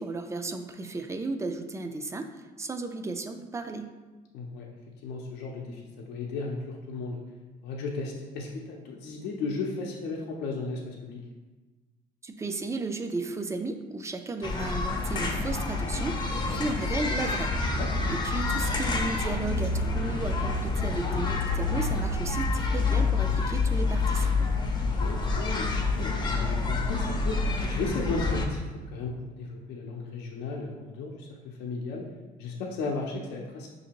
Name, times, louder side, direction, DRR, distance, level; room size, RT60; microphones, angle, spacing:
voice 1, 0.0-2.3 2.6-3.9 12.2-17.5 18.1-24.5, right 3 dB, 15° right, 7 dB, 0.3 m, -34 dB
voice 2, 4.3-4.7 5.0-7.2 7.6-11.2 16.3-16.6 17.8-17.9 25.0-28.6 28.9-32.1 32.4-33.7, left 3 dB, 80° left, -1 dB, 0.6 m, -35 dB
sound 1, 14.4-28.5, left 3 dB, 25° left, 0.6 m, -28 dB
5.7 x 2.6 x 2.8 m, 1.2 s
cardioid pair, 110°, 17 cm